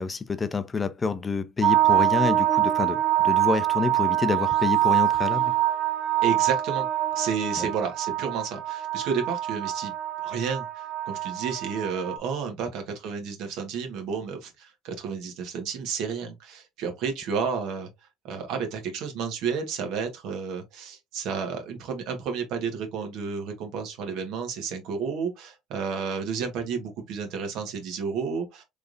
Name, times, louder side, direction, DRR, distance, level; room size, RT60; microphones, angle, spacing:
voice 1, 0.0-5.5 7.6-7.7, left 4 dB, 25° left, 0.5 m, -28 dB
sound 1, 1.6-12.2, right 13 dB, 45° right, 0.7 m, -25 dB
voice 2, 6.2-6.9 7.1-9.9 10.2-17.9 18.2-28.6, right 6 dB, 70° right, 1.5 m, -31 dB
3.5 x 3.3 x 2.6 m
supercardioid pair, 85°, 0 cm